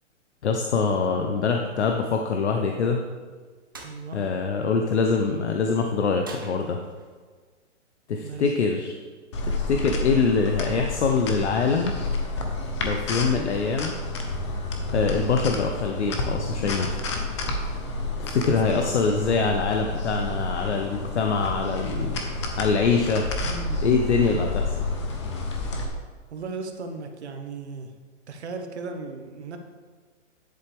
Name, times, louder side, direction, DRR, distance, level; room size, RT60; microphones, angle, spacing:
voice 1, 0.4-3.0 4.1-6.8 8.1-9.0 9.4-11.9 12.8-14.0 14.9-16.9 18.2-22.2 22.6-23.3 23.8-24.7, left 5 dB, 65° left, 3 dB, 0.9 m, -24 dB
sound 1, 3.7-4.0 6.2-7.2, right 3 dB, 20° right, 0.4 m, -42 dB
voice 2, 3.8-4.2 8.2-8.4 18.5-18.9 23.4-24.4 26.3-27.9 28.3-29.6, right 4 dB, 60° right, 5 dB, 1.3 m, -37 dB
sound 2, 9.3-25.8, left 2 dB, 25° left, 0.8 m, -30 dB
10.5 x 7.8 x 3.5 m, 1.5 s
hypercardioid pair, 165°, 37 cm